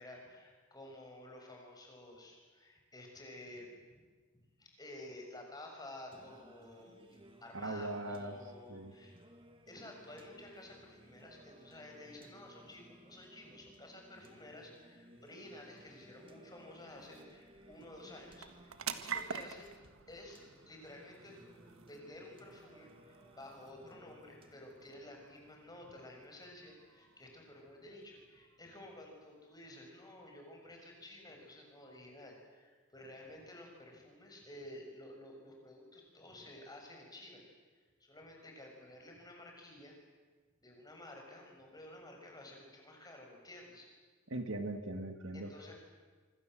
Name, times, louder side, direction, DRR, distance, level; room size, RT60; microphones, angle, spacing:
voice 1, 0.0-4.0 4.6-9.2 9.7-19.7 20.1-21.4 21.8-37.4 38.0-40.0 40.6-43.9 45.3-45.7, left 1 dB, 20° left, 1 dB, 6.4 m, -52 dB
Singing, 6.1-25.1, right 1 dB, 25° right, 2.1 m, -60 dB
voice 2, 7.5-8.4 8.7-8.9 44.3-45.5, right 2 dB, 65° right, 7 dB, 2.1 m, -40 dB
sound 1, 15.6-30.3, right 7 dB, 85° right, 1.5 m, -50 dB
26.0 x 25.5 x 7.7 m, 1.4 s
head